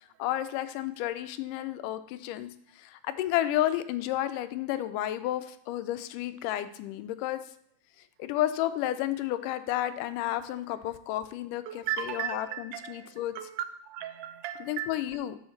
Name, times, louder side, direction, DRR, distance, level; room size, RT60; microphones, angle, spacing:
voice 1, 0.2-7.4 8.2-13.4 14.6-15.4, left 13 dB, 85° left, 12 dB, 2.1 m, -31 dB
voice 2, 11.7-14.9, right 10 dB, 85° right, 11 dB, 2.1 m, -36 dB
11.0 x 6.3 x 3.1 m, 0.67 s
omnidirectional pair, 3.7 m